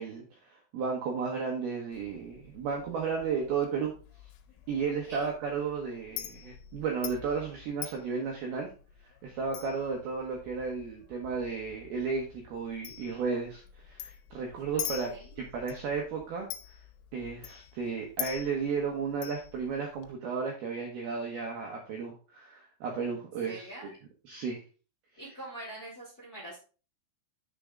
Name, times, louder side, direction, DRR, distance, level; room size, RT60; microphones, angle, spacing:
voice 1, 0.0-3.9 4.7-8.7 9.2-16.5 17.1-23.9 24.3-24.6, right 5 dB, 75° right, 1 dB, 2.4 m, -34 dB
Chink clink, 1.9-20.1, left 12 dB, 80° left, 3.3 m, -45 dB
voice 2, 14.7-15.3 23.2-23.9 25.2-26.6, right 1 dB, 30° left, -5 dB, 2.0 m, -44 dB
7.0 x 6.8 x 3.7 m, 0.36 s
omnidirectional pair, 5.8 m